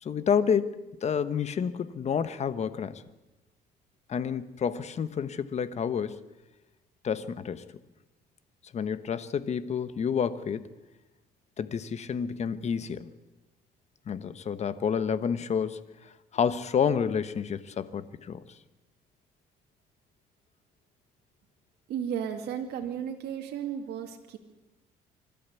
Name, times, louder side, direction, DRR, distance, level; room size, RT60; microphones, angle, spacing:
voice 1, 0.0-3.0 4.1-6.2 7.0-7.6 8.7-10.7 11.6-13.1 14.1-18.4, left 7 dB, 40° left, 13 dB, 1.2 m, -29 dB
voice 2, 21.9-24.4, right 8 dB, 75° right, 3 dB, 2.3 m, -34 dB
25.5 x 12.5 x 8.4 m, 1.1 s
cardioid pair, 110°, 17 cm